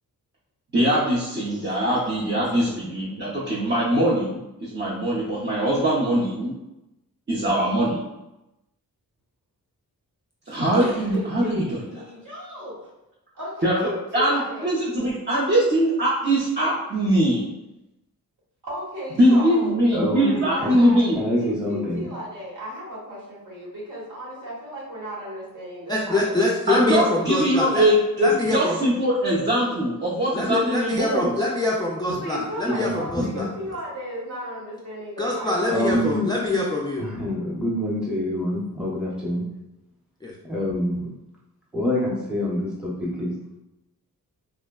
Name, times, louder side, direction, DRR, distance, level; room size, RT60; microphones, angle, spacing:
voice 1, 0.7-6.5 7.3-8.0 10.5-11.7 13.6-13.8 14.1-17.5 19.2-21.2 26.7-31.4, right 1 dB, 30° right, -8 dB, 0.6 m, -22 dB
voice 2, 10.4-12.9 13.3-14.7 18.6-21.1 21.4-26.4 32.1-35.7, equal, 60° right, -6 dB, 1.4 m, -35 dB
voice 3, 19.9-20.8 21.1-22.1 32.6-33.5 35.7-36.3 37.0-39.4 40.4-41.1 41.7-43.3, left 1 dB, ahead, -6 dB, 0.8 m, -26 dB
voice 4, 25.9-27.9 28.2-28.8 30.3-33.5 35.2-37.0 40.2-40.3, left 2 dB, 15° left, -3 dB, 0.3 m, -24 dB
3.4 x 2.1 x 2.2 m, 0.93 s
wide cardioid pair, 85°, 35 cm